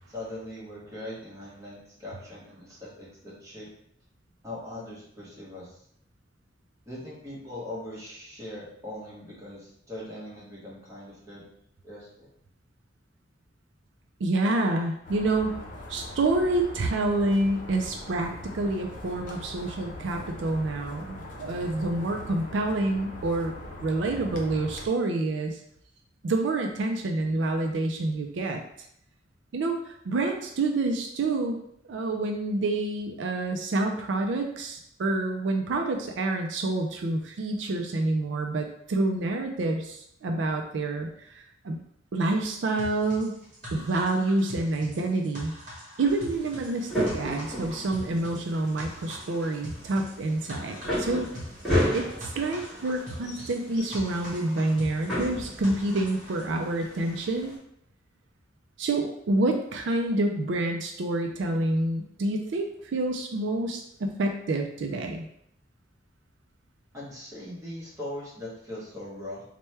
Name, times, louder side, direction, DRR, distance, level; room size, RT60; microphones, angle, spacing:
voice 1, 0.1-3.7 4.4-5.8 6.9-11.4 11.8-12.3 66.9-69.4, left 1 dB, 15° right, -7 dB, 1.1 m, -40 dB
voice 2, 14.2-15.5 15.9-23.5 23.8-25.6 26.2-28.6 29.5-31.6 31.9-41.8 42.1-43.4 43.7-45.5 46.0-51.3 51.9-57.5 58.8-65.3, right 2 dB, 75° right, 3 dB, 0.4 m, -28 dB
sound 1, 15.0-24.9, left 1 dB, 45° left, 0.6 m, -41 dB
sound 2, 42.8-56.5, equal, 40° right, 1.1 m, -43 dB
sound 3, 46.0-57.6, equal, ahead, 1.4 m, -34 dB
3.2 x 2.2 x 4.3 m, 0.72 s
head